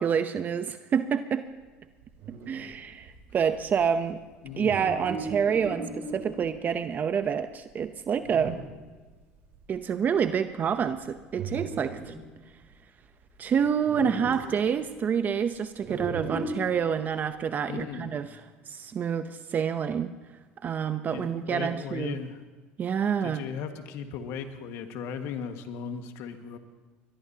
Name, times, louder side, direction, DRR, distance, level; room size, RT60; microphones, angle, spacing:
voice 1, 0.0-1.4 2.5-4.2 4.6-8.6 9.7-12.1 13.4-18.4 18.7-20.1 20.6-22.2 22.8-23.4, right 7 dB, 40° right, 10 dB, 0.7 m, -28 dB
sound 1, 2.0-6.6 7.2-7.3 7.7-7.8 8.2-8.9 9.1-9.2 9.4-9.8 10.3-10.5 11.0-12.3 13.2-13.3 13.6-14.6 15.8-16.9, right 3 dB, 65° right, 4.2 m, -37 dB
voice 2, 4.4-4.8 17.7-18.2 21.1-22.4 23.2-26.6, left 7 dB, 70° left, 6 dB, 1.7 m, -37 dB
22.0 x 21.5 x 2.9 m, 1.3 s
supercardioid pair, 90°, 5 cm